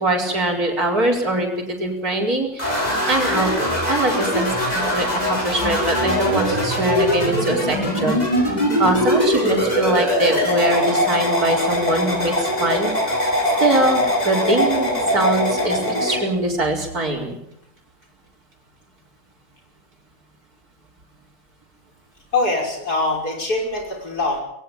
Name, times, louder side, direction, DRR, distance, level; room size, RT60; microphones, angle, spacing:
voice 1, 0.0-1.5 1.8-2.7 3.1-3.5 3.9-4.5 4.7-8.2 8.8-12.9 13.6-17.4, right 1 dB, 70° right, 0 dB, 5.2 m, -22 dB
sound 1, 2.6-16.2, equal, 25° left, 6.9 m, -21 dB
voice 2, 22.3-24.4, left 2 dB, 80° left, 1 dB, 6.4 m, -23 dB
21.5 x 17.5 x 8.8 m, 0.76 s
omnidirectional pair, 1.6 m